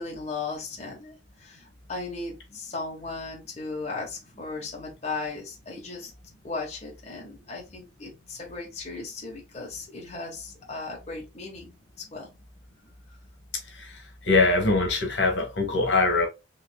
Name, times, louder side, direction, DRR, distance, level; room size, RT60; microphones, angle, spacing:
voice 1, 0.0-6.1 6.4-11.7 12.1-12.3, left 3 dB, 35° left, 1.2 m, -36 dB
voice 2, 14.3-16.3, left 3 dB, 75° left, 1.4 m, -22 dB
4.0 x 3.3 x 2.3 m
head